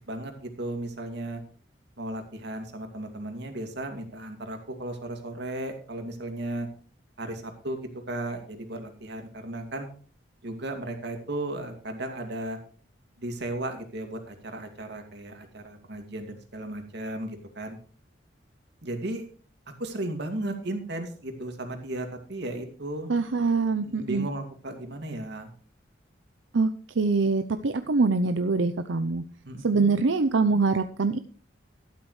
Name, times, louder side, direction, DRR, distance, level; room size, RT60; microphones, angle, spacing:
voice 1, 0.1-1.4 2.0-6.7 7.2-9.9 10.4-12.6 13.2-17.8 18.8-19.2 19.8-23.1 23.8-25.5 29.4-29.9, right 1 dB, 65° right, 5 dB, 2.4 m, -35 dB
voice 2, 23.1-24.3 26.5-26.7 27.0-29.2 29.6-31.2, right 4 dB, 90° right, 9 dB, 0.7 m, -24 dB
12.5 x 12.0 x 3.2 m, 0.42 s
head